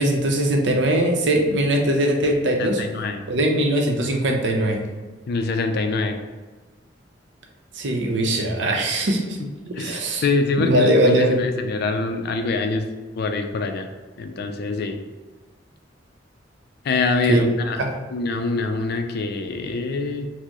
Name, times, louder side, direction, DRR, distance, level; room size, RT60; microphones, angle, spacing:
voice 1, 0.0-2.8 3.3-4.8 7.8-9.4 9.6-10.2 10.6-11.4 17.3-17.4 17.8-17.9, right 1 dB, 70° right, 2 dB, 0.6 m, -20 dB
voice 2, 2.6-3.2 5.3-6.2 9.7-12.9 13.2-13.9 14.2-15.0 16.8-17.8 18.1-20.3, left 3 dB, 55° left, 6 dB, 0.4 m, -24 dB
4.3 x 2.0 x 2.9 m, 1.3 s
head